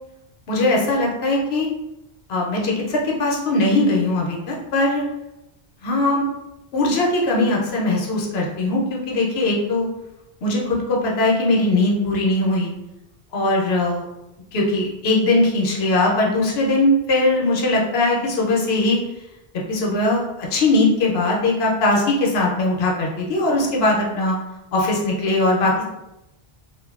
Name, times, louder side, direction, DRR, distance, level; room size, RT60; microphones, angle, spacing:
voice 1, 0.5-1.7 2.3-5.0 5.8-6.2 6.7-9.9 10.4-12.7 13.3-14.1 14.5-19.0 19.7-24.4 24.7-25.8, left 2 dB, 80° left, -2 dB, 0.9 m, -20 dB
2.6 x 2.2 x 2.3 m, 0.91 s
omnidirectional pair, 1.0 m